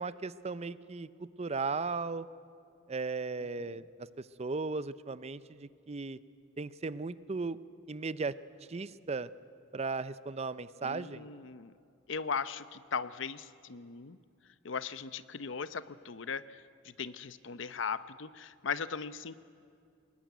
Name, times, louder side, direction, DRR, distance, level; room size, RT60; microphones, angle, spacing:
voice 1, 0.0-2.3 2.9-6.2 6.6-7.6 7.9-8.3 8.7-9.3 9.7-11.3, right 4 dB, 35° right, 16 dB, 0.5 m, -36 dB
voice 2, 10.8-11.7 12.1-14.2 14.6-19.4, left 5 dB, 65° left, 14 dB, 0.7 m, -38 dB
24.0 x 20.5 x 9.3 m, 2.4 s
head